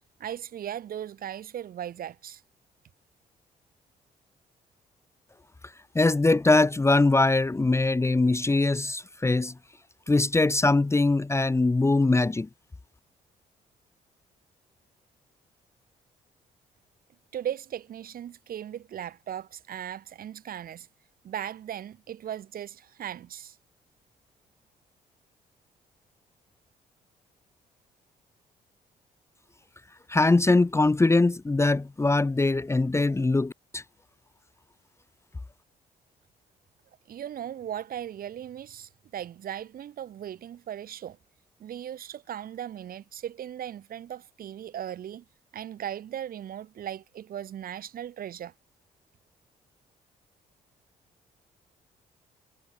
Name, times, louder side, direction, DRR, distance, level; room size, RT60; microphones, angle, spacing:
voice 1, 0.2-2.4 17.3-20.9 21.2-23.6 37.1-41.2 41.6-45.2 45.5-48.5, right 10 dB, 65° right, 3.0 m, -37 dB
voice 2, 5.9-9.5 10.1-12.5 30.1-33.8, left 2 dB, 15° left, 0.8 m, -22 dB
supercardioid pair, 70°, 16 cm